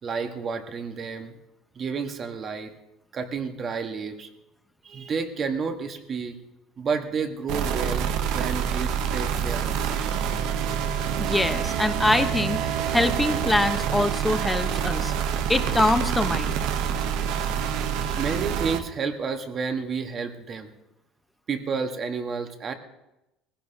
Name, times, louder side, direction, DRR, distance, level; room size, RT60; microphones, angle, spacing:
voice 1, 0.0-1.3 1.7-2.7 3.1-4.3 4.8-6.4 6.8-10.2 11.3-11.4 18.2-20.7 21.5-22.7, right 5 dB, 35° right, 6 dB, 1.4 m, -31 dB
sound 1, 7.5-18.8, right 8 dB, 70° right, 0.9 m, -27 dB
voice 2, 11.2-15.1 15.5-16.6, left 2 dB, 10° left, 8 dB, 0.9 m, -24 dB
20.0 x 16.0 x 2.9 m, 0.92 s
cardioid pair, 130°, 0 cm